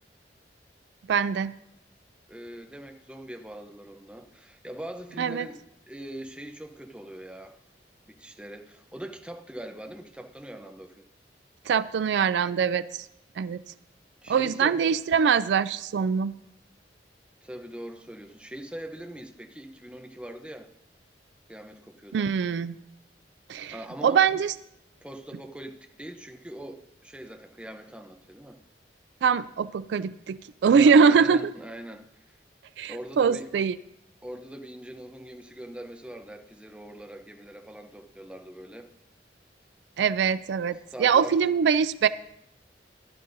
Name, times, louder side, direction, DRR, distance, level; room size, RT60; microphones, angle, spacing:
voice 1, 1.1-1.5 5.2-5.5 11.7-13.1 13.4-13.6 14.3-16.3 22.1-22.8 23.5-23.7 24.0-24.5 29.2-31.4 32.8-33.8 40.0-42.1, right 6 dB, 75° right, 16 dB, 0.3 m, -23 dB
voice 2, 2.3-5.6 5.9-7.5 8.1-11.0 14.2-14.8 17.4-20.7 21.5-22.3 23.7-24.3 25.0-28.6 30.7-32.0 32.9-33.5 34.2-38.9 40.9-41.5, right 1 dB, 5° right, 4 dB, 0.7 m, -42 dB
15.0 x 11.0 x 2.6 m, 0.80 s
head